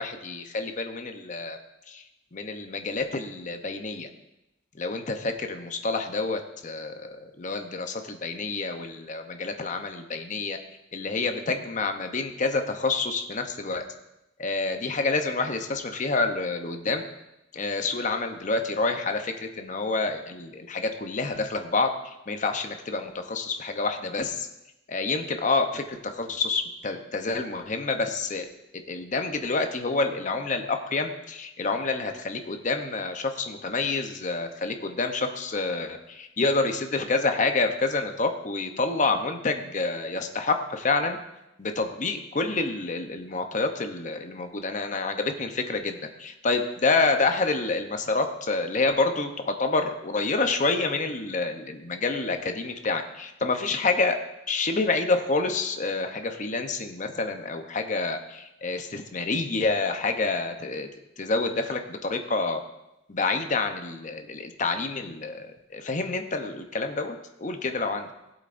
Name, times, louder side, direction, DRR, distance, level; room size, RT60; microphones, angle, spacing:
voice 1, 0.0-1.6 1.9-2.0 2.3-4.1 4.7-10.6 10.9-13.8 14.4-17.0 17.5-24.5 24.9-28.5 28.9-41.2 41.6-54.2 54.5-60.9 61.2-62.6 63.1-68.1, left 3 dB, 40° left, 6 dB, 0.8 m, -28 dB
16.5 x 8.0 x 2.6 m, 0.90 s
head